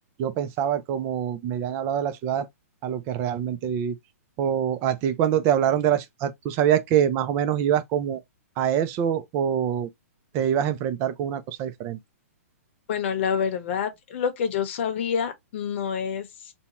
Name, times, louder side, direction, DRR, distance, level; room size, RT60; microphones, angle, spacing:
voice 1, 0.2-2.5 2.8-4.0 4.4-8.2 8.6-9.9 10.3-12.0, right 9 dB, 30° right, 0.5 m, -25 dB
voice 2, 12.9-16.5, left 7 dB, 50° left, 0.9 m, -27 dB
2.7 x 2.2 x 2.9 m
hypercardioid pair, 145°, 8 cm